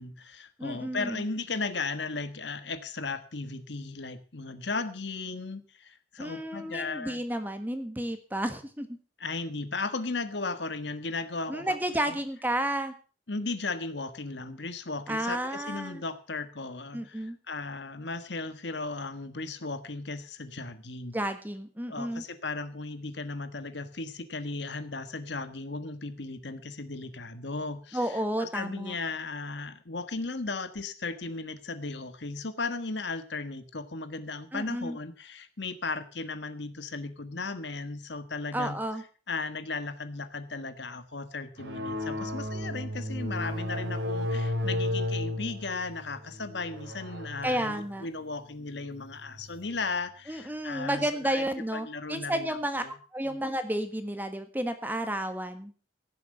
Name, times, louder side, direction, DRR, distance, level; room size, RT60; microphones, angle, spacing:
voice 1, 0.0-7.2 9.2-11.8 12.1-12.2 13.3-21.2 21.9-38.8 39.3-51.4 51.7-52.9 53.2-53.4, left 3 dB, 70° left, 10 dB, 1.4 m, -36 dB
voice 2, 0.6-1.2 6.2-8.9 11.5-12.9 15.1-16.0 16.9-17.4 21.1-22.2 27.9-28.9 34.5-35.0 38.5-39.0 47.4-48.1 50.3-52.8 53.1-55.7, right 1 dB, 10° right, 8 dB, 1.5 m, -31 dB
sound 1, 41.6-49.7, left 1 dB, 90° right, 3.7 m, -34 dB
16.5 x 7.5 x 6.5 m, 0.37 s
head